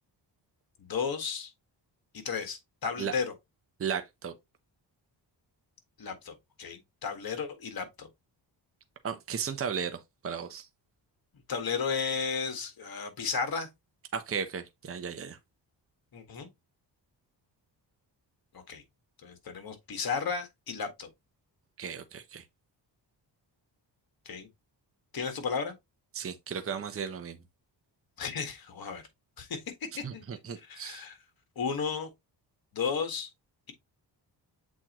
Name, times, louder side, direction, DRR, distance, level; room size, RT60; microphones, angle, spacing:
voice 1, 0.8-1.5 2.1-3.3 6.0-8.1 11.5-13.7 16.1-16.5 18.5-18.8 19.2-21.1 24.2-24.5 25.1-25.7 28.2-29.0 29.4-29.6 30.0-30.2 30.7-31.2 31.5-32.1 32.7-33.3, left 5 dB, 55° left, 1.8 m, -34 dB
voice 2, 3.8-4.3 9.0-10.7 14.1-15.4 21.8-22.4 26.1-27.4 30.0-31.0, right 7 dB, 30° right, 0.8 m, -35 dB
7.5 x 4.2 x 3.0 m
cardioid pair, 120°, 43 cm